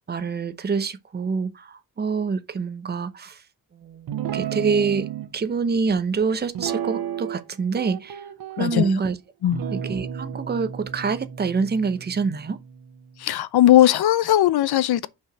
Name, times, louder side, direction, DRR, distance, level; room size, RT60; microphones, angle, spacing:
voice 1, 0.1-3.4 3.7-5.1 5.3-8.3 8.6-9.2 9.4-12.6, right 5 dB, 25° right, 0.7 m, -26 dB
Guitar, 4.1-5.3 6.5-7.5 7.8-8.9 9.5-13.0, right 9 dB, 65° right, 0.9 m, -32 dB
voice 2, 13.2-15.1, left 12 dB, 75° left, 0.7 m, -18 dB
5.7 x 4.9 x 6.1 m
wide cardioid pair, 140°, 39 cm